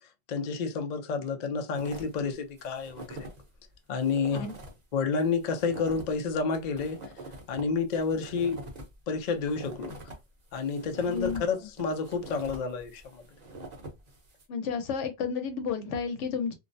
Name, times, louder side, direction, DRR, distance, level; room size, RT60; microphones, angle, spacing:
voice 1, 0.3-3.3 3.9-4.5 4.9-7.1 7.5-8.7 9.1-10.0 10.5-13.2, left 5 dB, 60° left, 0.4 m, -30 dB
sound 1, 1.7-2.2 2.6-3.4 3.7-3.8 4.0-4.8 5.2-10.1 10.5-14.4, right 1 dB, 40° right, 0.8 m, -44 dB
voice 2, 11.1-11.5 14.5-16.5, left 6 dB, 75° left, 1.0 m, -32 dB
2.4 x 2.0 x 2.5 m
omnidirectional pair, 1.2 m